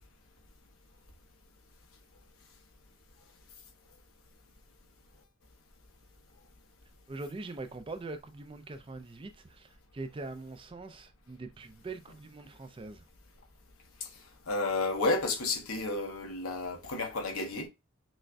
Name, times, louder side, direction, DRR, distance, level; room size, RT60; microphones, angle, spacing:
voice 1, 7.1-13.1, right 3 dB, 25° right, 0.4 m, -43 dB
voice 2, 14.5-17.7, left 3 dB, 85° left, 1.0 m, -31 dB
6.1 x 2.2 x 2.5 m
head